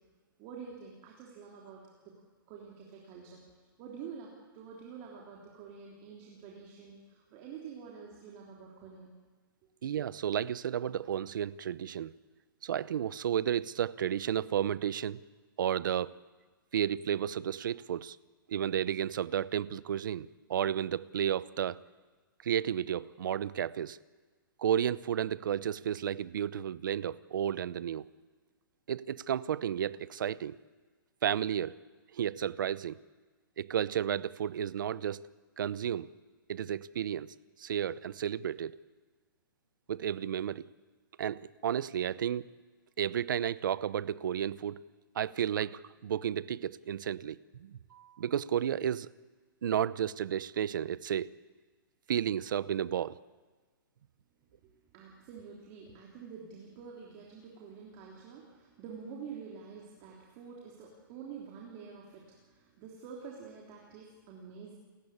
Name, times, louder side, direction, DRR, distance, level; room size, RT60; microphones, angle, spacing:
voice 1, 0.4-2.2 2.5-9.1 54.6-64.7, right 6 dB, 25° right, -2 dB, 3.3 m, -48 dB
voice 2, 9.8-12.1 12.6-15.2 15.6-16.1 16.7-18.2 18.5-21.8 22.4-24.0 24.6-28.0 28.9-30.6 31.2-31.8 32.1-33.0 33.6-35.2 35.6-36.1 36.5-38.8 39.9-40.7 41.2-42.5 43.0-44.8 45.1-49.1 49.6-51.3 52.1-53.2, right 9 dB, 60° right, 18 dB, 0.8 m, -32 dB
29.5 x 15.0 x 8.7 m, 1.4 s
hypercardioid pair, 165°, 12 cm